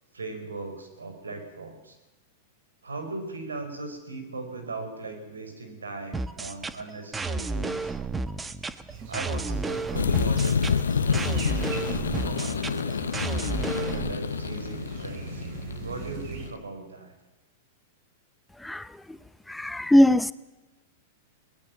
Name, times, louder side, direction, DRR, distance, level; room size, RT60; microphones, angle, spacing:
voice 1, 0.1-2.0 2.8-8.0 9.1-13.2 13.7-15.4 15.8-17.1, right 3 dB, 90° right, 6 dB, 5.1 m, -39 dB
sound 1, 6.1-14.1, right 3 dB, 15° right, 1.2 m, -32 dB
sound 2, 8.9-16.5, right 5 dB, 55° right, 4.6 m, -42 dB
sound 3, 9.9-16.6, left 6 dB, 85° left, 1.0 m, -28 dB
voice 2, 19.5-20.3, left 1 dB, 5° left, 16 dB, 0.7 m, -20 dB
22.0 x 19.0 x 7.3 m, 1.1 s
hypercardioid pair, 105°, 0 cm